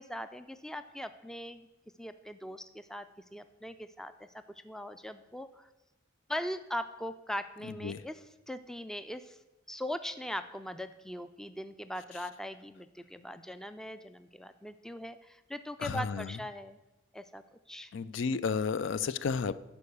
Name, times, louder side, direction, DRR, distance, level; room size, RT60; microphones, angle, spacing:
voice 1, 0.0-1.7 2.0-3.1 3.3-4.3 4.6-5.7 6.3-8.2 8.5-9.4 9.7-16.8 17.1-17.4 17.7-17.9, equal, 5° left, 11 dB, 0.3 m, -40 dB
voice 2, 7.6-8.0 15.8-16.4 17.9-19.6, left 5 dB, 70° left, 15 dB, 0.4 m, -32 dB
11.5 x 4.6 x 6.9 m, 1.0 s
head